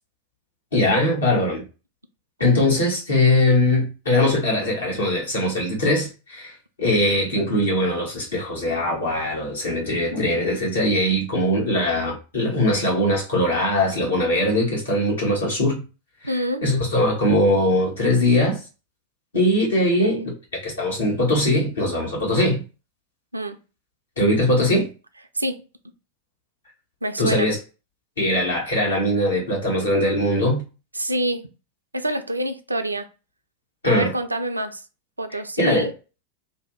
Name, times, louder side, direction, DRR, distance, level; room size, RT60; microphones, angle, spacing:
voice 1, 0.7-1.6 2.4-15.8 16.2-18.6 19.3-22.6 24.2-24.9 27.2-27.6 28.2-30.6 33.8-34.1 35.3-35.9, left 1 dB, 70° left, 1.4 m, -21 dB
voice 2, 16.2-16.6 19.8-20.3 23.3-23.6 25.3-25.6 27.0-27.5 30.9-31.5 31.9-33.1 33.8-34.8 35.2-35.9, right 1 dB, 80° right, 0.3 m, -26 dB
2.7 x 2.2 x 3.2 m
figure-of-eight pair, 90°, 0 cm